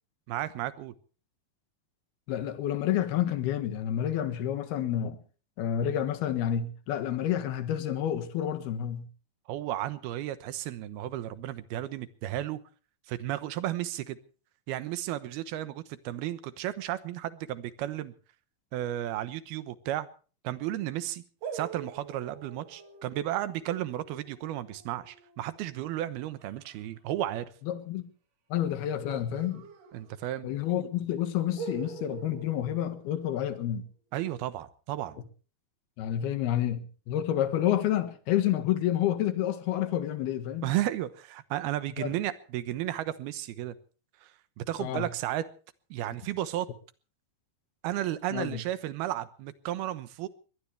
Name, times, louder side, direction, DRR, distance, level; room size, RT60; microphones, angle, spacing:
voice 1, 0.3-0.9 9.5-12.6 13.1-14.2 14.7-18.1 18.7-20.1 20.4-21.2 21.5-27.5 29.9-30.5 34.1-35.2 40.6-43.7 44.2-44.3 44.6-45.5 45.9-46.7 47.8-50.3, right 13 dB, 85° right, 3.0 m, -33 dB
voice 2, 2.3-5.2 5.6-9.0 27.7-28.1 28.5-29.7 30.4-33.8 36.0-40.7 42.0-42.1 44.8-45.1 48.3-48.6, left 11 dB, 90° left, 3.5 m, -29 dB
sound 1, 21.4-26.8 29.1-30.5 30.8-30.9 31.6-33.7, right 6 dB, 60° right, 3.9 m, -45 dB
22.0 x 19.5 x 3.4 m
omnidirectional pair, 4.4 m